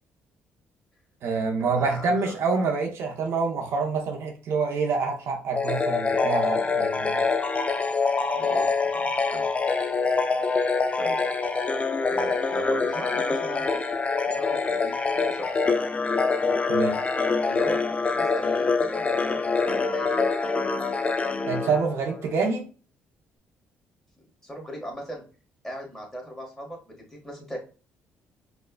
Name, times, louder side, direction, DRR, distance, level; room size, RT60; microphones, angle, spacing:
voice 1, 1.2-7.2 16.7-17.0 21.5-22.7, right 4 dB, 70° right, 3 dB, 0.7 m, -26 dB
voice 2, 1.8-2.6 6.6-7.1 8.3-8.7 8.9-10.0 11.0-11.2 12.1-13.7 14.2-15.8 17.4-20.2 24.4-25.2 25.6-27.6, equal, 10° left, 0 dB, 1.4 m, -39 dB
sound 1, 5.6-22.3, left 4 dB, 30° left, 0.4 m, -25 dB
4.3 x 2.2 x 2.2 m, 0.35 s
supercardioid pair, 75°, 5 cm